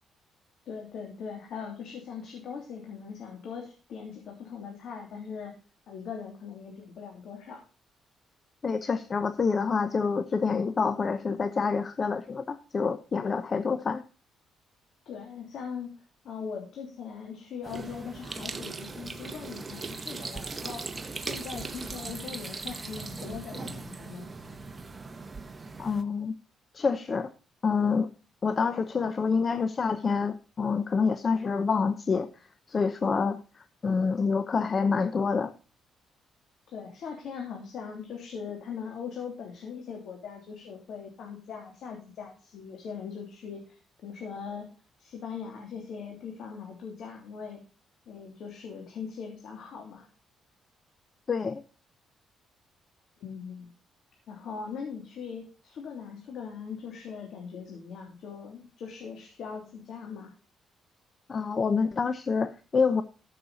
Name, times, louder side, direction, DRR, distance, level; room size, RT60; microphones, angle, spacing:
voice 1, 0.6-5.5 5.9-7.6 15.0-15.9 16.2-24.3 36.7-44.7 45.0-47.6 48.1-50.1 53.2-53.7 54.3-60.3, left 6 dB, 70° left, 1 dB, 3.0 m, -40 dB
voice 2, 8.6-14.0 25.8-26.3 26.7-27.3 27.6-28.1 28.4-35.5 51.3-51.6 61.3-63.0, left 5 dB, 40° left, 11 dB, 0.8 m, -27 dB
sound 1, 17.6-26.0, right 3 dB, 25° right, 1.4 m, -39 dB
14.5 x 6.8 x 4.1 m, 0.36 s
cardioid pair, 90°, 0 cm